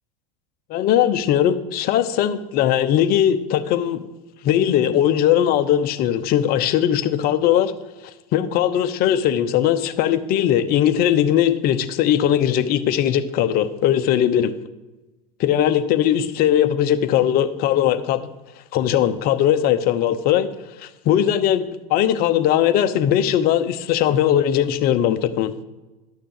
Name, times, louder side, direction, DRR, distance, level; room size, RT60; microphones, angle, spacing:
voice 1, 0.7-4.0 4.4-7.7 8.0-14.5 15.4-18.3 18.7-20.5 20.8-25.5, left 10 dB, 50° left, 11 dB, 0.8 m, -19 dB
11.0 x 6.7 x 6.5 m, 1.1 s
supercardioid pair, 110°, 20 cm